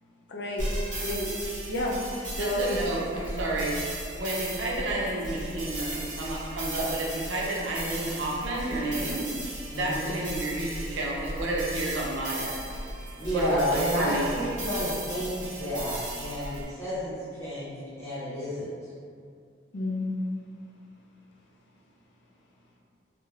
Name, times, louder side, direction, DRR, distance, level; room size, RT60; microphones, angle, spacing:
voice 1, 0.3-0.7 1.0-1.3 1.7-2.0 2.3-2.7 19.7-20.1, left 1 dB, 60° left, -3 dB, 0.4 m, -30 dB
sound 1, 0.6-16.6, right 1 dB, 40° right, 0.7 m, -36 dB
voice 2, 2.4-3.8 4.1-9.3 9.8-14.4, right 2 dB, 80° right, -3 dB, 0.5 m, -31 dB
voice 3, 9.7-10.1 13.2-17.1 17.4-18.7, equal, 15° left, -12 dB, 0.8 m, -30 dB
2.3 x 2.0 x 3.0 m, 2.3 s
head